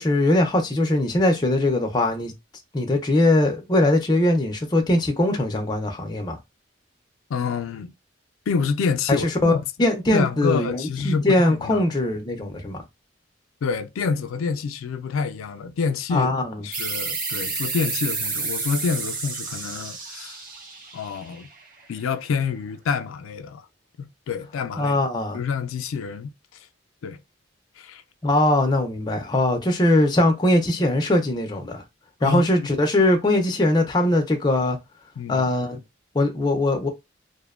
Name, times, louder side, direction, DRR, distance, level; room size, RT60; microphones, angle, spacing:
voice 1, 0.0-2.3 2.7-6.4 9.1-12.8 16.1-16.6 24.8-25.4 28.2-31.8 32.2-34.8 35.3-35.8 36.1-36.9, left 1 dB, 20° left, 0.4 m, -21 dB
voice 2, 7.3-7.9 8.5-9.6 10.1-11.9 13.6-16.3 16.6-20.4 20.9-21.5 21.9-23.7 24.0-25.0 25.3-26.3 27.0-27.2 27.8-28.0 32.2-32.7 35.2-35.5, left 5 dB, 90° left, 0.4 m, -27 dB
sound 1, 16.7-22.0, right 4 dB, 45° right, 0.6 m, -30 dB
2.5 x 2.1 x 2.3 m
head